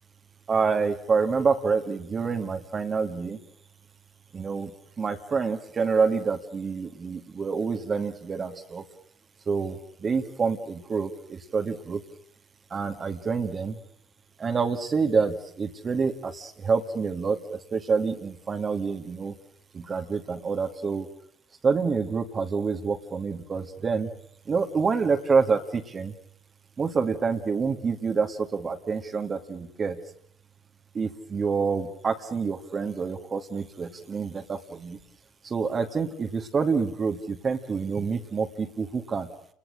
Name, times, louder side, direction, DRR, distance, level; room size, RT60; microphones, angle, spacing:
voice 1, 0.5-3.4 4.3-8.8 9.5-12.0 12.7-13.8 14.4-19.3 19.7-21.1 21.6-24.1 24.5-26.1 26.8-30.0 30.9-35.0 35.4-39.3, right 5 dB, 35° right, 5 dB, 2.3 m, -27 dB
29.5 x 21.0 x 6.6 m, 0.63 s
hypercardioid pair, 60°, 0 cm